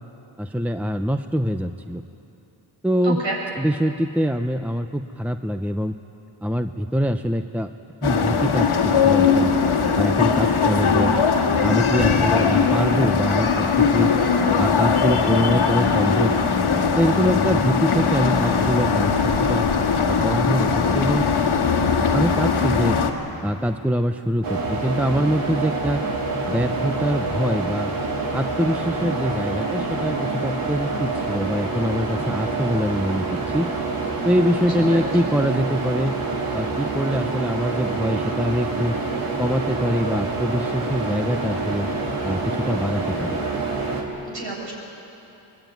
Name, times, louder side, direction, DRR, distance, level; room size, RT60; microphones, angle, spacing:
voice 1, 0.4-2.0 2.8-3.2 3.6-5.9 6.4-7.7 8.0-9.5 9.9-11.1 11.6-14.1 14.6-16.3 17.0-19.1 19.5-19.7 20.1-21.3 22.1-23.0 23.4-26.0 26.5-27.9 28.3-33.7 34.2-36.1 36.5-39.0 39.4-41.9 42.2-43.4, equal, 5° right, 8 dB, 0.7 m, -24 dB
voice 2, 3.0-3.4 34.6-35.0 44.3-44.7, right 2 dB, 65° right, -2 dB, 7.5 m, -30 dB
sound 1, 8.0-23.1, left 5 dB, 90° left, 1.9 m, -20 dB
sound 2, 24.4-44.0, right 3 dB, 90° right, 3.0 m, -27 dB
22.5 x 20.5 x 9.4 m, 2.9 s
cardioid pair, 60°, 48 cm